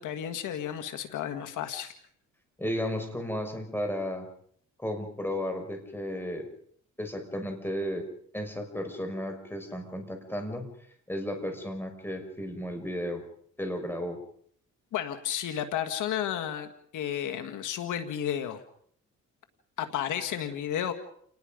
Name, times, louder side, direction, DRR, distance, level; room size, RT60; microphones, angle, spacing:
voice 1, 0.0-1.9 14.9-18.6 19.8-20.9, left 10 dB, 80° left, 8 dB, 2.0 m, -32 dB
voice 2, 2.6-4.3 4.8-6.5 7.0-8.1 8.3-10.7 11.1-13.2 13.6-14.2, equal, 5° left, 5 dB, 6.0 m, -34 dB
29.5 x 20.0 x 5.3 m, 0.62 s
cardioid pair, 90°, 30 cm